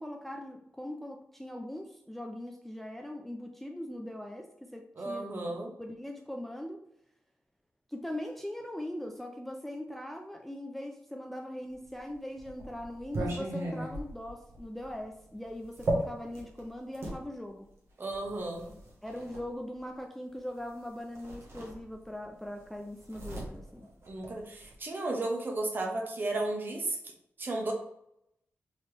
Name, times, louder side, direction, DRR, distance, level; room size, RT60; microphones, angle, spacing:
voice 1, 0.0-5.3 5.8-6.8 7.9-17.7 19.0-23.9, left 1 dB, 5° left, 2 dB, 0.4 m, -41 dB
voice 2, 5.0-5.7 18.0-18.7 24.1-27.0 27.4-27.7, right 2 dB, 45° right, 1 dB, 0.9 m, -34 dB
sound 1, 11.9-17.2 18.1-19.4 20.7-20.8 21.1-22.2 22.5-24.7, right 1 dB, 60° right, 1.2 m, -38 dB
4.1 x 3.0 x 3.2 m, 0.77 s
wide cardioid pair, 105°, 5 cm